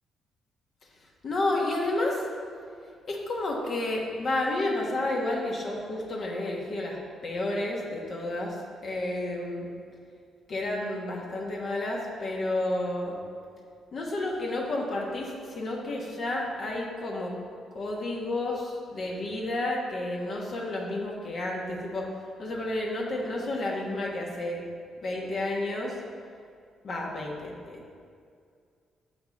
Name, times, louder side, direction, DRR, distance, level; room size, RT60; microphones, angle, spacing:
voice 1, 1.2-2.2 3.0-7.0 7.2-9.7 10.5-13.2 13.9-17.4 17.7-22.1 22.4-24.6 25.0-26.0 26.8-28.0, left 2 dB, 50° left, -2 dB, 1.5 m, -31 dB
7.2 x 5.8 x 5.4 m, 2.2 s
cardioid pair, 90°, 0 cm